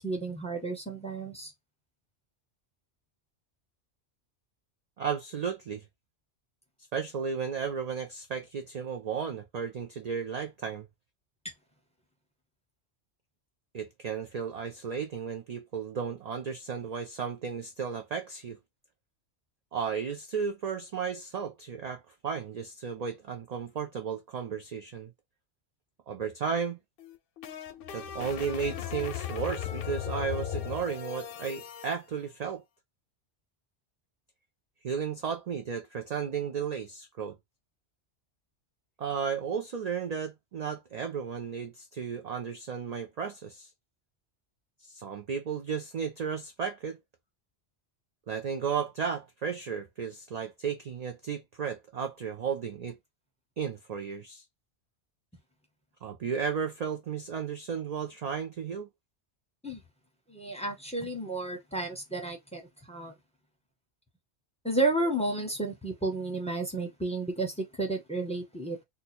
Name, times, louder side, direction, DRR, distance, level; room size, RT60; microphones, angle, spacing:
voice 1, 0.0-1.5 59.6-59.8 60.3-62.6 62.9-63.1 64.6-68.8, right 2 dB, 5° left, 0.7 m, -32 dB
voice 2, 5.0-5.8 6.9-10.9 13.7-18.6 19.7-25.1 26.1-26.8 27.9-32.6 34.8-37.4 39.0-43.7 44.8-47.0 48.3-53.0 53.6-54.4 56.0-58.9, right 6 dB, 55° right, 0.4 m, -34 dB
sound 1, 27.0-32.0, left 10 dB, 65° left, 0.7 m, -37 dB
2.8 x 2.2 x 4.1 m
omnidirectional pair, 1.2 m